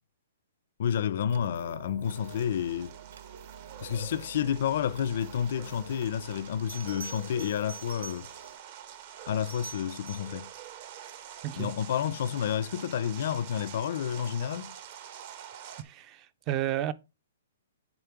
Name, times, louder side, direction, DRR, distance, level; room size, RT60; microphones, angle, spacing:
voice 1, 0.8-2.9 3.8-8.3 9.3-10.5 11.6-14.7, left 9 dB, 55° left, 0.4 m, -30 dB
sound 1, 1.3-8.6, right 7 dB, 70° right, 0.7 m, -49 dB
sound 2, 2.0-15.8, right 10 dB, 40° right, 0.7 m, -47 dB
Bell, 6.7-8.6 9.3-10.4 13.1-13.3, right 4 dB, 90° right, 2.5 m, -46 dB
voice 2, 11.4-11.7 15.8-16.9, right 12 dB, 25° right, 0.4 m, -32 dB
6.9 x 4.2 x 4.6 m
hypercardioid pair, 160°, 0 cm